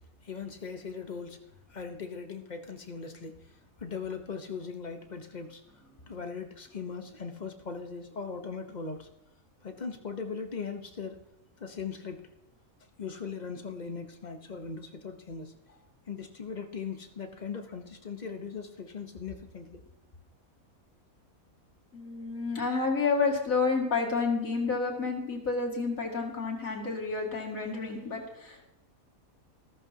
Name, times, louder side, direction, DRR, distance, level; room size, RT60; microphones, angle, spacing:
voice 1, 0.2-1.4 1.7-3.4 3.8-5.6 6.1-9.1 9.6-11.2 11.6-12.3 13.0-15.5 16.1-19.8, left 5 dB, 35° left, 6 dB, 1.1 m, -39 dB
voice 2, 21.9-28.7, left 4 dB, 70° left, 0 dB, 2.6 m, -30 dB
14.5 x 14.0 x 2.9 m, 0.86 s
omnidirectional pair, 1.5 m